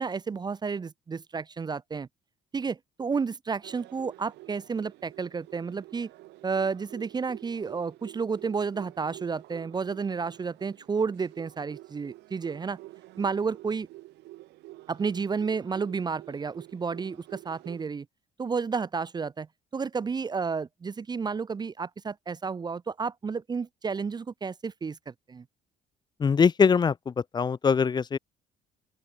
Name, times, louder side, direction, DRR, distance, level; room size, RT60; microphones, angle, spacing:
voice 1, 0.0-2.1 2.5-6.1 6.4-12.8 13.2-13.9 14.9-18.1 18.4-19.5 19.7-25.4, right 5 dB, 25° right, 0.7 m, -31 dB
sound 1, 3.6-17.8, right 18 dB, 85° right, 4.8 m, -49 dB
voice 2, 26.2-28.2, left 6 dB, 25° left, 0.5 m, -23 dB
open air
cardioid pair, 110°, 17 cm